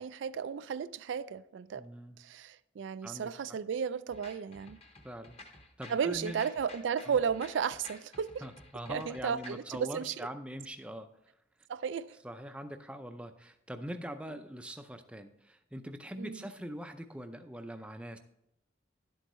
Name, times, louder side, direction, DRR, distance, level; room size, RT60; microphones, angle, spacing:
voice 1, 0.0-1.9 2.2-4.8 5.9-8.3 8.9-10.3 11.7-12.1 16.2-16.4, right 7 dB, 85° right, 0.3 m, -34 dB
voice 2, 1.8-2.2 3.0-3.3 5.0-5.4 5.8-6.4 7.0-7.2 8.4-11.1 12.2-18.2, equal, 5° right, 0.4 m, -43 dB
sound 1, 4.1-9.8, left 2 dB, 30° left, 1.0 m, -52 dB
11.0 x 7.8 x 3.1 m
head